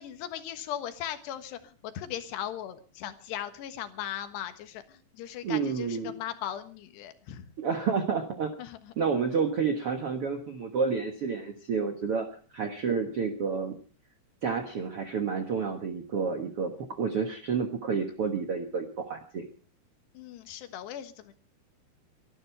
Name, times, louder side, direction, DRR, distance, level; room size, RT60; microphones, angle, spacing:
voice 1, 0.0-7.5 8.6-8.9 20.2-21.3, left 11 dB, 85° left, 9 dB, 3.5 m, -38 dB
voice 2, 5.4-6.1 7.6-8.5 9.0-13.7 14.4-19.4, right 5 dB, 65° right, 5 dB, 1.4 m, -30 dB
24.0 x 12.0 x 4.5 m, 0.39 s
omnidirectional pair, 4.8 m